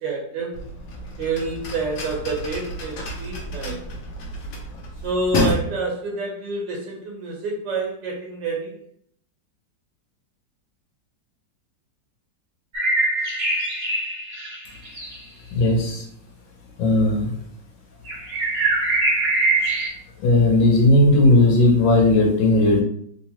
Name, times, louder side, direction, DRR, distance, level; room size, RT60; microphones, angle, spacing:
voice 1, 0.0-0.6 1.2-3.8 5.0-8.9, right 3 dB, 80° right, -1 dB, 1.4 m, -28 dB
sound 1, 0.5-5.6, left 1 dB, 60° left, 1.0 m, -29 dB
sound 2, 12.7-15.2 18.0-19.9, right 2 dB, 45° right, 0.9 m, -23 dB
voice 2, 15.5-16.0 16.8-17.3 20.2-22.8, left 2 dB, 85° left, 1 dB, 1.6 m, -16 dB
3.5 x 2.8 x 2.9 m, 0.66 s
omnidirectional pair, 2.0 m